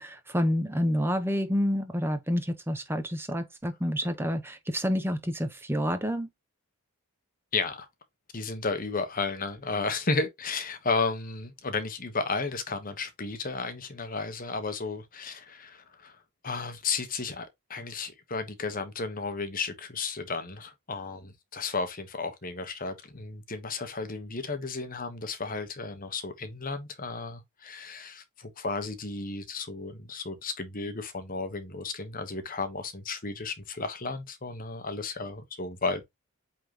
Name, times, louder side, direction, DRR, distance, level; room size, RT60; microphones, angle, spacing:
voice 1, 0.0-6.3, equal, 10° right, 1.1 m, -28 dB
voice 2, 7.5-7.9 8.3-16.2 16.4-36.0, left 4 dB, 40° left, 1.2 m, -33 dB
8.6 x 3.8 x 3.0 m
head